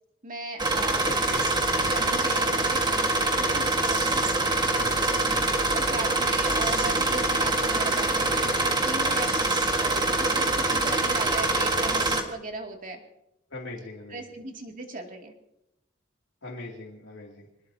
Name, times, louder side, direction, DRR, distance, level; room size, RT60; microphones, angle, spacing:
voice 1, 0.2-1.1 1.6-4.6 5.7-9.3 9.8-13.0 14.1-15.3, right 2 dB, 45° right, 2 dB, 2.5 m, -37 dB
sound 1, 0.6-12.2, right 2 dB, 20° right, 1.6 m, -24 dB
voice 2, 1.0-1.5 4.8-5.0 13.5-14.2 16.4-17.5, left 2 dB, 75° left, -3 dB, 2.7 m, -40 dB
25.5 x 20.0 x 2.8 m, 0.84 s
head